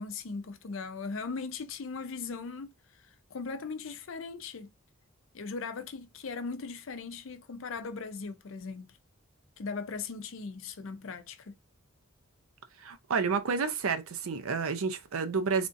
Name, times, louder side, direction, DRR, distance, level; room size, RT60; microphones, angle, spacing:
voice 1, 0.0-2.7 3.3-4.7 5.3-8.9 9.6-11.5, left 4 dB, 65° left, 0.5 m, -38 dB
voice 2, 12.8-15.7, right 5 dB, 75° right, 0.5 m, -30 dB
3.4 x 2.6 x 2.5 m
head